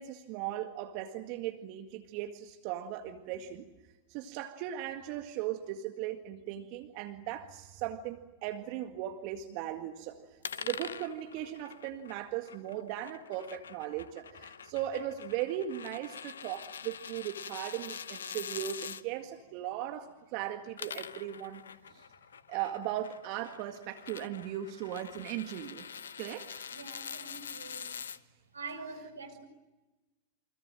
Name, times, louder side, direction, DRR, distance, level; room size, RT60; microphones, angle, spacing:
voice 1, 0.0-3.7 4.1-21.6 21.9-22.0 22.5-25.9 26.2-26.7, right 12 dB, 50° right, 6 dB, 1.9 m, -38 dB
sound 1, 10.4-19.0 20.5-28.2, left 7 dB, 80° left, 1.1 m, -45 dB
voice 2, 26.7-27.9 28.5-29.5, right 4 dB, 85° right, 8 dB, 4.6 m, -45 dB
29.0 x 26.0 x 7.6 m, 1.1 s
hypercardioid pair, 95°, 0 cm